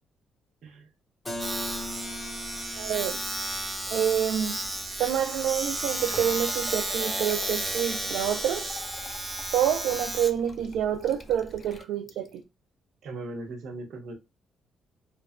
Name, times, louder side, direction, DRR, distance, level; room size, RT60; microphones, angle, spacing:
Keyboard (musical), 1.2-6.8, left 2 dB, 15° left, 0.9 m, -42 dB
Domestic sounds home sounds, 1.4-11.8, right 1 dB, 15° right, 0.6 m, -33 dB
voice 1, 2.8-3.2 3.9-4.7 5.0-8.7 9.5-12.4, right 10 dB, 85° right, 0.3 m, -27 dB
Liquid, 5.6-12.4, left 4 dB, 35° left, 0.5 m, -46 dB
voice 2, 13.0-14.1, right 2 dB, 70° right, 0.8 m, -38 dB
2.9 x 2.2 x 2.4 m
cardioid pair, 90°, 0 cm